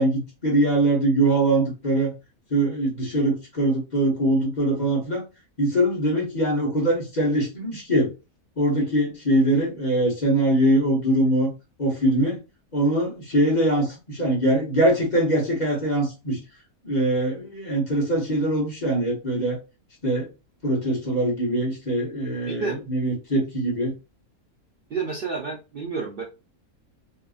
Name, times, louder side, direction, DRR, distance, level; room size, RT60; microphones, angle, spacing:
voice 1, 0.0-2.1 2.5-5.2 5.6-8.1 8.6-11.5 11.8-12.4 12.7-16.4 16.8-19.6 20.0-20.3 20.6-23.9, right 1 dB, 35° left, -2 dB, 0.8 m, -22 dB
voice 2, 22.5-22.8 24.9-26.2, right 4 dB, 85° right, 0 dB, 0.4 m, -30 dB
2.7 x 2.4 x 2.3 m, 0.29 s
omnidirectional pair, 1.6 m